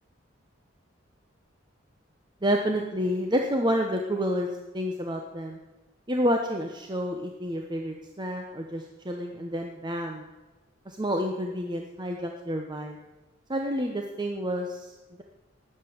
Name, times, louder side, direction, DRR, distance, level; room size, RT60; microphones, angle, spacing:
voice 1, 2.4-4.5 4.7-5.6 6.1-10.3 10.9-13.0 13.5-14.9, equal, 20° right, 2 dB, 1.0 m, -29 dB
19.0 x 7.9 x 7.1 m, 1.1 s
head